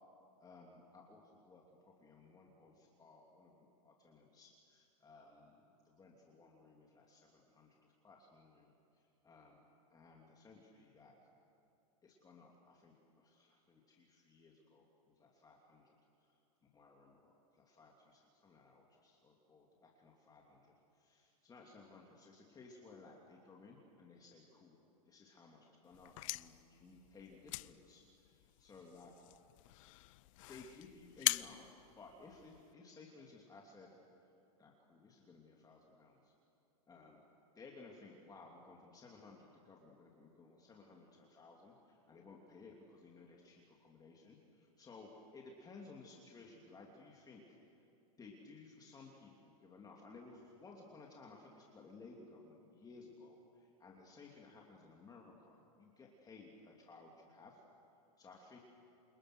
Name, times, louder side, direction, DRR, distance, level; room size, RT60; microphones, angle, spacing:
voice 1, 0.4-9.6 9.9-11.3 12.0-15.9 16.2-16.3 16.7-24.8 25.1-28.3 28.6-29.1 30.5-33.9 34.6-36.3 36.9-37.2 37.5-47.8 48.2-57.6 58.2-58.6, left 3 dB, 20° left, -1 dB, 3.1 m, -58 dB
sound 1, 25.9-32.7, left 20 dB, 55° left, 0.6 m, -43 dB
29.0 x 27.5 x 6.4 m, 2.8 s
hypercardioid pair, 115°, 19 cm